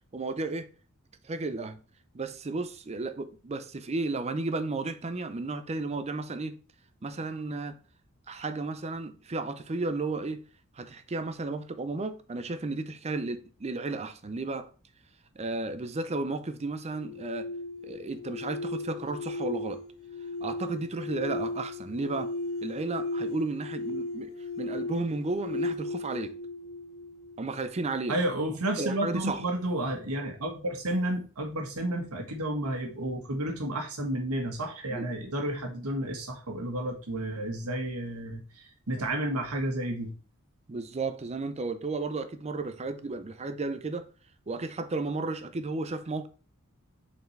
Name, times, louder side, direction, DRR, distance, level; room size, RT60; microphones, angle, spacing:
voice 1, 0.1-0.7 1.2-1.8 2.1-6.6 7.0-7.8 8.3-10.4 10.7-14.7 15.4-17.5 17.8-19.8 20.4-22.3 22.6-26.4 27.4-28.1 28.8-29.4 34.9-35.1 40.7-44.1 44.5-46.3, right 3 dB, 30° right, 0.5 m, -33 dB
sound 1, 16.9-28.0, left 2 dB, 70° left, 0.8 m, -36 dB
voice 2, 28.1-40.1, right 1 dB, 85° right, 1.5 m, -31 dB
6.8 x 4.3 x 3.2 m
head